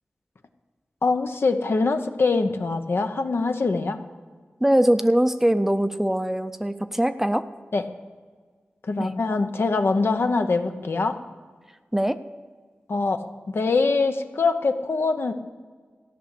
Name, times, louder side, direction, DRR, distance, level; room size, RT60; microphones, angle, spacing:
voice 1, 1.0-4.0 7.7-7.8 8.8-11.2 12.9-15.3, left 3 dB, 70° left, 7 dB, 0.8 m, -23 dB
voice 2, 4.6-7.4 9.0-9.1 11.9-12.2, right 1 dB, 10° right, 10 dB, 0.5 m, -22 dB
14.0 x 6.0 x 8.4 m, 1.5 s
wide cardioid pair, 75°, 4 cm